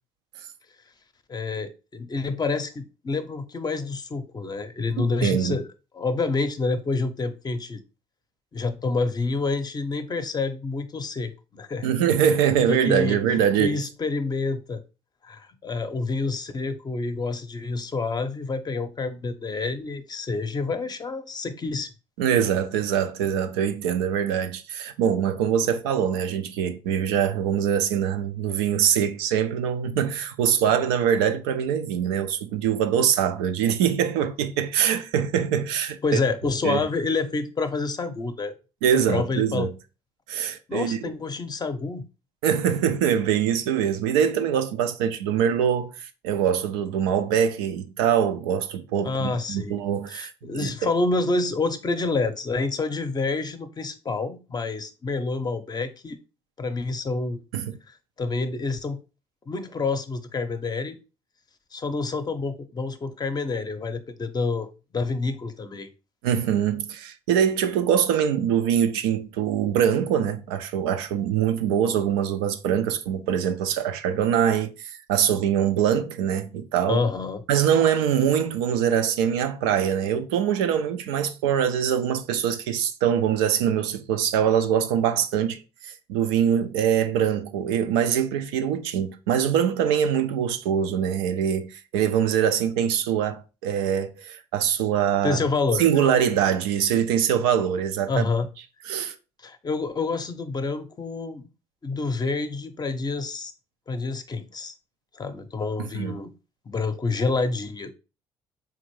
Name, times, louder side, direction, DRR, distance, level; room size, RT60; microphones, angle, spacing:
voice 1, 1.3-5.7 5.9-7.8 8.5-11.9 12.7-13.2 13.6-14.8 15.2-21.9 36.0-38.5 38.9-39.7 40.7-42.1 49.0-49.8 50.1-56.2 56.6-57.4 57.9-59.0 59.5-61.0 61.7-64.7 64.9-65.9 76.9-77.4 95.2-95.9 98.1-98.5 99.4-101.4 101.8-103.5 103.9-104.7 105.1-106.3 106.7-107.9, left 3 dB, 30° left, 0.6 m, -28 dB
voice 2, 5.0-5.6 11.8-13.8 22.2-36.2 36.6-36.8 38.8-39.7 40.3-41.0 42.4-50.9 57.5-57.8 66.2-77.0 77.5-95.4 95.8-98.3 98.9-99.1 105.8-106.2, right 8 dB, 85° right, 0.4 m, -23 dB
3.8 x 2.5 x 3.0 m
hypercardioid pair, 60°, 13 cm